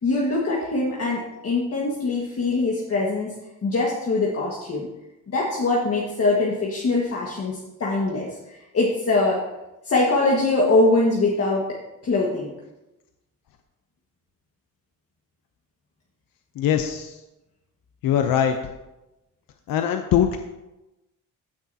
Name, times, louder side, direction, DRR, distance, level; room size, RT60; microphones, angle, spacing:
voice 1, 0.0-3.3 3.6-4.9 5.3-9.4 9.8-12.5, left 2 dB, 45° left, -3 dB, 1.7 m, -23 dB
voice 2, 16.6-17.2 18.0-18.6 19.7-20.4, left 9 dB, 80° left, 6 dB, 0.8 m, -21 dB
15.5 x 6.2 x 2.8 m, 0.99 s
cardioid pair, 100°, 34 cm